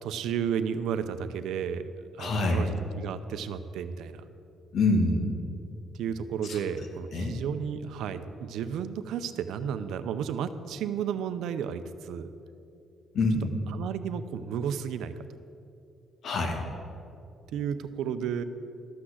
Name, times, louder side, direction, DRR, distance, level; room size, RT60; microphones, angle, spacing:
voice 1, 0.0-1.9 2.2-4.3 5.9-12.3 13.7-15.3 17.5-18.4, right 8 dB, 85° right, 11 dB, 0.6 m, -33 dB
voice 2, 2.2-2.7 4.7-5.5 6.4-6.6 7.1-7.4 13.1-13.5 16.2-16.6, left 2 dB, 65° left, 3 dB, 1.8 m, -26 dB
12.5 x 6.2 x 7.9 m, 2.6 s
cardioid pair, 90°, 0 cm